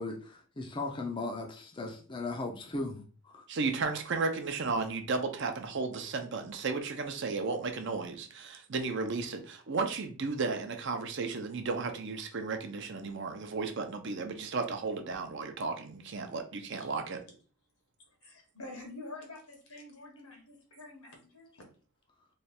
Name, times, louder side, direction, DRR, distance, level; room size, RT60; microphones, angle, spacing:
voice 1, 0.0-3.4, left 2 dB, 20° left, 0.4 m, -37 dB
voice 2, 3.5-17.2, right 4 dB, 55° right, 0.6 m, -34 dB
voice 3, 18.1-21.6, left 2 dB, 85° left, 1.4 m, -48 dB
3.2 x 2.4 x 4.2 m
head